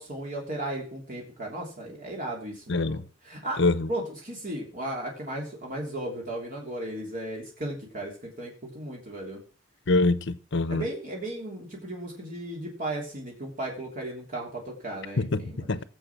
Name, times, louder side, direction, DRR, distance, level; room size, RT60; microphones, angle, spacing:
voice 1, 0.0-3.6 3.9-9.4 10.7-15.7, right 1 dB, 45° right, 3.3 m, -35 dB
voice 2, 2.7-3.0 3.6-3.9 9.9-10.9 15.2-15.8, left 2 dB, 65° left, 0.9 m, -25 dB
17.5 x 7.9 x 6.0 m
head